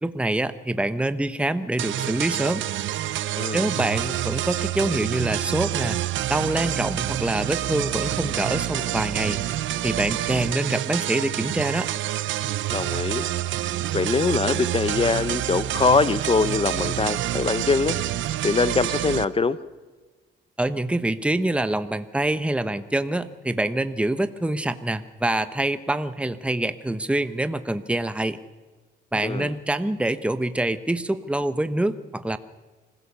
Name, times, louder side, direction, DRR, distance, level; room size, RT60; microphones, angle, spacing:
voice 1, 0.0-2.6 3.5-6.0 6.3-9.4 9.8-11.9 20.6-28.4 29.1-32.4, right 1 dB, 5° right, 11 dB, 1.0 m, -25 dB
sound 1, 1.8-19.2, right 13 dB, 75° right, 0.8 m, -27 dB
voice 2, 3.4-3.7 12.7-13.3 13.9-18.0 18.4-19.6 29.2-29.5, left 4 dB, 30° left, 15 dB, 0.8 m, -23 dB
25.5 x 16.0 x 6.9 m, 1.3 s
cardioid pair, 90°, 20 cm